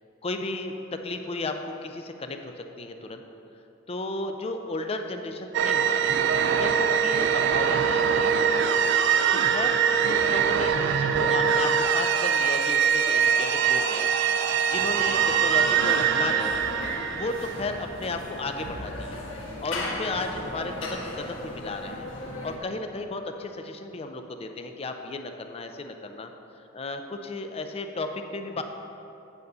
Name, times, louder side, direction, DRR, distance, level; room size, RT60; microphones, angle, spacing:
voice 1, 0.2-3.2 3.9-6.2 6.6-8.7 9.3-9.8 10.0-14.1 14.7-16.6 17.1-19.2 19.6-22.1 22.4-26.3 26.7-28.6, left 2 dB, 30° left, 6 dB, 0.5 m, -34 dB
sound 1, 5.5-18.1, right 7 dB, 60° right, 0.4 m, -23 dB
sound 2, 14.7-22.6, left 1 dB, 75° left, 1.3 m, -37 dB
9.3 x 4.1 x 6.6 m, 2.8 s
head